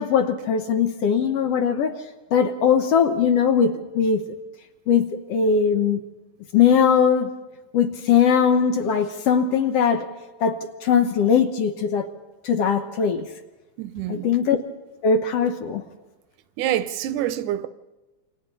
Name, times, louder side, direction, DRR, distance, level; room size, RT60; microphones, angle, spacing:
voice 1, 0.0-2.0 2.3-4.2 4.9-6.0 6.5-7.3 7.7-10.1 10.4-12.1 12.4-13.3 14.1-14.6 15.0-15.8, left 7 dB, 65° left, 1.8 m, -20 dB
voice 2, 13.8-14.3 16.6-17.7, right 12 dB, 85° right, 2.3 m, -26 dB
28.5 x 25.5 x 4.1 m
omnidirectional pair, 3.4 m